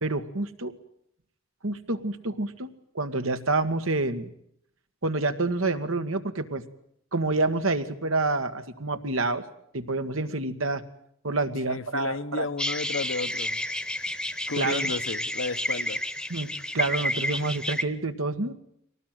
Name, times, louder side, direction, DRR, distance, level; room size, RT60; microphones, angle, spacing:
voice 1, 0.0-0.7 1.6-2.7 3.0-4.3 5.0-6.6 7.1-9.4 9.7-10.8 11.2-12.5 14.6-14.9 16.3-16.5 16.7-18.5, right 2 dB, 85° right, 1.9 m, -28 dB
voice 2, 11.7-13.7 14.0-16.0, left 4 dB, 75° left, 1.1 m, -33 dB
sound 1, 12.6-17.8, left 1 dB, 5° left, 1.0 m, -30 dB
23.5 x 18.5 x 9.3 m
head